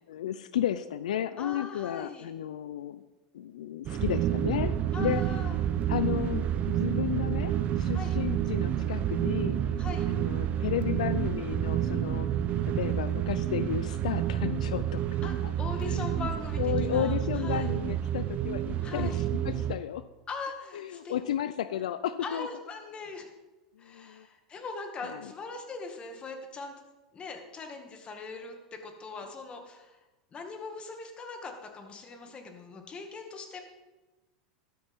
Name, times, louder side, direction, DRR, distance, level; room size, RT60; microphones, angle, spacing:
voice 1, 0.1-3.0 3.3-5.2 5.9-9.6 10.1-12.3 12.6-15.5 15.8-16.1 16.6-20.0 20.7-22.5 23.8-24.3 25.0-25.2, left 11 dB, 85° left, 14 dB, 0.5 m, -33 dB
voice 2, 1.4-2.3 4.9-5.6 7.9-8.2 9.8-10.1 15.2-17.7 18.8-19.2 20.3-21.2 22.2-23.3 23.8-26.8 27.1-30.0 30.3-33.6, left 4 dB, 30° left, 4 dB, 2.1 m, -41 dB
sound 1, 3.9-19.8, right 10 dB, 40° right, 0.7 m, -29 dB
13.0 x 13.0 x 3.7 m, 1.1 s
hypercardioid pair, 110°, 4 cm